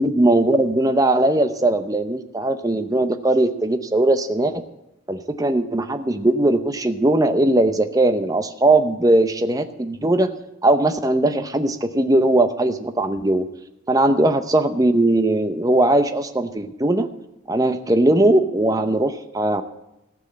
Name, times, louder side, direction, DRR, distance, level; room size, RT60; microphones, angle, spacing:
voice 1, 0.0-4.5 5.1-10.3 10.6-13.5 13.9-17.1 17.5-19.6, right 1 dB, 15° right, 9 dB, 0.7 m, -19 dB
14.5 x 6.3 x 8.7 m, 0.93 s
head